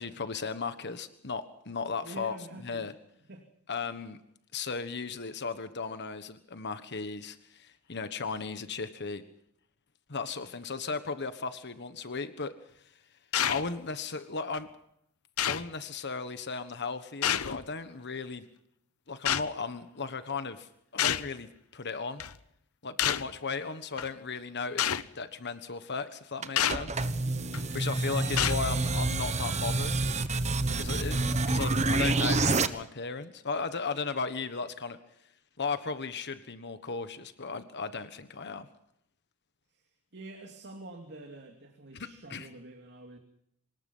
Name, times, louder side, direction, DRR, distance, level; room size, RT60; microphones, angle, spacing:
voice 1, 0.0-2.4 2.6-2.9 3.7-4.2 4.5-9.2 10.1-12.5 13.4-14.7 15.4-18.4 19.1-22.2 22.8-27.1 27.7-29.9 30.8-35.0 35.6-38.7 41.9-42.5, left 4 dB, 50° left, 10 dB, 1.4 m, -36 dB
voice 2, 2.0-2.9 3.3-3.4 27.2-27.8 28.0-29.1 31.4-32.1 39.7-43.2, right 2 dB, 50° right, 3 dB, 2.7 m, -47 dB
sound 1, 13.3-13.7 14.5-14.6 15.4-15.7 17.2-17.6 19.2-19.5 21.0-21.3 22.2-22.4 23.0-23.3 24.0-24.1 24.8-25.0 26.6-26.8 27.5-27.8 28.4-28.7, left 10 dB, 70° left, 0.9 m, -28 dB
sound 2, 26.4-32.7, right 3 dB, 30° right, 1.2 m, -28 dB
25.5 x 20.0 x 5.6 m, 0.74 s
head